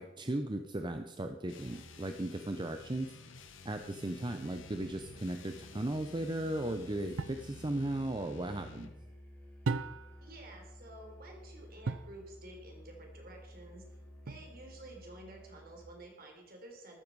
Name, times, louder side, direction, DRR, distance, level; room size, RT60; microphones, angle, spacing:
voice 1, 0.0-3.2 3.6-8.9, right 1 dB, 25° right, 7 dB, 0.6 m, -36 dB
sound 1, 1.5-9.0, left 3 dB, 75° left, 1.4 m, -53 dB
Musical instrument, 4.2-16.0, equal, 10° left, 3.5 m, -54 dB
sound 2, 7.2-7.5 9.6-10.3 11.8-12.2 14.3-14.8, right 4 dB, 75° right, 0.6 m, -36 dB
voice 2, 10.2-14.0 14.2-17.0, right 1 dB, 50° right, 1 dB, 3.9 m, -51 dB
14.0 x 12.5 x 4.7 m, 1.0 s
head